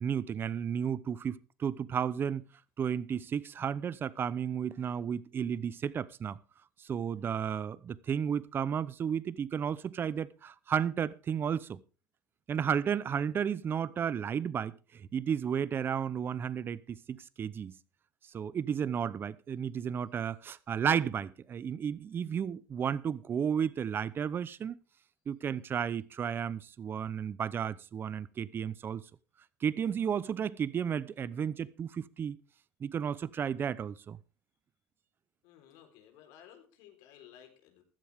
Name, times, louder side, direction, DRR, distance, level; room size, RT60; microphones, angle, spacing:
voice 1, 0.0-2.4 2.8-6.4 6.8-11.8 12.5-17.8 18.3-24.8 25.3-29.0 29.6-32.4 32.8-34.2, right 8 dB, 30° right, 0.7 m, -33 dB
voice 2, 35.4-37.8, left 10 dB, 70° left, 4.1 m, -56 dB
15.0 x 13.0 x 3.6 m
supercardioid pair, 120°, 7 cm